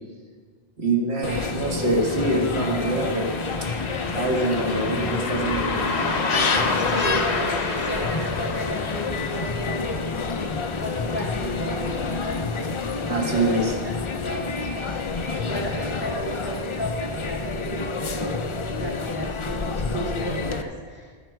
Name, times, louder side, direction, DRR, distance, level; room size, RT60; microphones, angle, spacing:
voice 1, 0.8-3.7 4.1-5.9 13.1-13.7, right 2 dB, 80° right, -1 dB, 2.1 m, -25 dB
sound 1, 1.2-20.6, left 4 dB, 40° left, 0.5 m, -28 dB
Car passing by, 2.0-12.8 13.1-13.2 14.2-14.4 14.8-14.9 15.4-15.5, left 3 dB, 85° left, 1.4 m, -31 dB
voice 2, 6.9-10.1 10.8-12.4 13.3-13.9 14.2-15.1 15.4-21.1, equal, 10° right, -3 dB, 1.7 m, -34 dB
12.5 x 10.0 x 4.6 m, 1.5 s
omnidirectional pair, 1.1 m